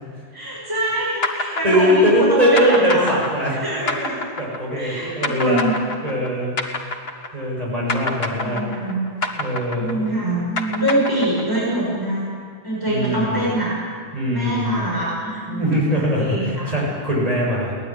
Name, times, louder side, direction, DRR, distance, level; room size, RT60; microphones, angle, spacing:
voice 1, 0.3-3.1 3.5-4.2 4.7-5.7 8.4-9.0 9.7-12.2 12.6-13.8 14.3-16.7, right 1 dB, 20° right, -6 dB, 6.4 m, -24 dB
sound 1, 1.2-7.6 7.9-11.7, left 2 dB, 65° left, 2.0 m, -27 dB
voice 2, 1.6-3.6 4.4-5.7 6.0-6.6 7.3-8.6 9.4-10.0 12.9-13.5 14.1-14.9 15.5-17.7, equal, 35° right, -4 dB, 7.3 m, -21 dB
23.0 x 18.5 x 9.8 m, 2.1 s
omnidirectional pair, 1.1 m